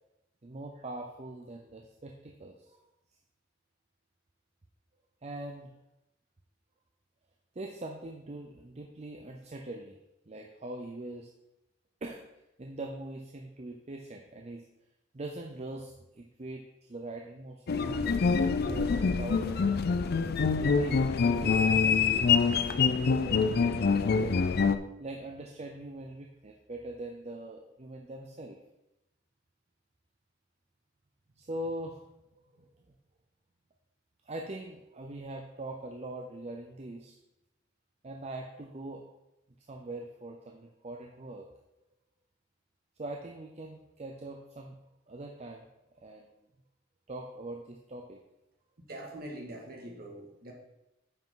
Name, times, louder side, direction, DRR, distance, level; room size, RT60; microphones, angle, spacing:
voice 1, 0.4-2.8 5.2-5.7 7.5-10.0 10.3-11.3 12.0-12.3 12.6-14.7 15.1-19.6 20.5-22.3 22.7-24.4 25.0-28.6 31.4-32.0 32.3-32.7 34.2-37.2 38.0-39.0 39.7-41.5 43.0-44.8 45.1-45.7 46.0-46.3 47.1-48.2, right 2 dB, 35° right, 2 dB, 0.6 m, -42 dB
sound 1, 17.7-24.8, left 5 dB, 50° left, 0.4 m, -25 dB
voice 2, 48.9-50.5, right 1 dB, 50° right, -1 dB, 1.8 m, -43 dB
8.9 x 5.8 x 3.8 m, 0.92 s
head